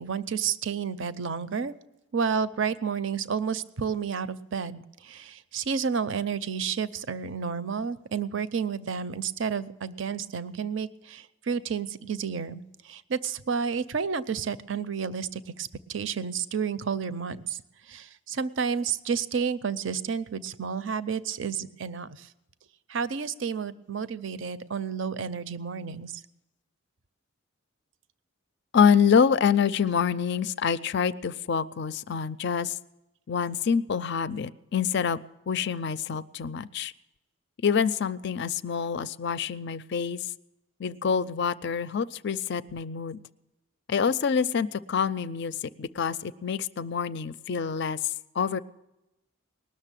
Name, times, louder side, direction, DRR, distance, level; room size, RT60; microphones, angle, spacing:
voice 1, 0.0-1.7 2.1-17.6 17.9-22.3 22.9-26.1, right 6 dB, 60° right, 15 dB, 0.6 m, -31 dB
voice 2, 28.7-32.8 33.3-35.2 35.5-36.9 37.6-40.3 40.8-43.2 43.9-48.6, left 6 dB, 50° left, 17 dB, 0.4 m, -26 dB
19.5 x 6.7 x 9.0 m, 0.94 s
head